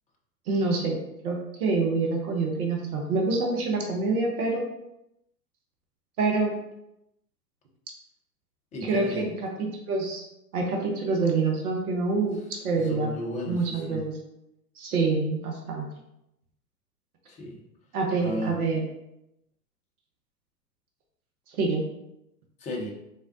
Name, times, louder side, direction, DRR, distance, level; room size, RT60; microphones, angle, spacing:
voice 1, 0.5-1.0 1.2-4.6 6.2-6.5 8.8-9.3 9.6-10.2 10.5-12.4 12.6-13.1 13.5-14.1 14.8-15.9 17.9-18.9 21.6-21.8, right 3 dB, 65° right, 1 dB, 1.0 m, -26 dB
voice 2, 8.7-9.3 12.7-14.0 17.3-17.6 18.2-18.6 22.6-22.9, equal, 15° left, -1 dB, 0.6 m, -34 dB
4.1 x 3.5 x 2.6 m, 0.84 s
figure-of-eight pair, 100°, 49 cm